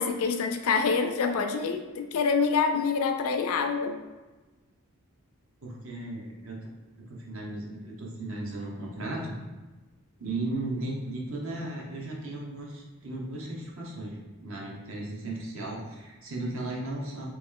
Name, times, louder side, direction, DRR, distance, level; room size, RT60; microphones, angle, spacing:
voice 1, 0.0-4.0, left 5 dB, 70° left, 6 dB, 0.4 m, -26 dB
voice 2, 5.6-6.7 7.1-9.4 10.2-17.3, right 2 dB, 60° right, -2 dB, 0.9 m, -36 dB
3.1 x 3.0 x 3.6 m, 1.2 s
head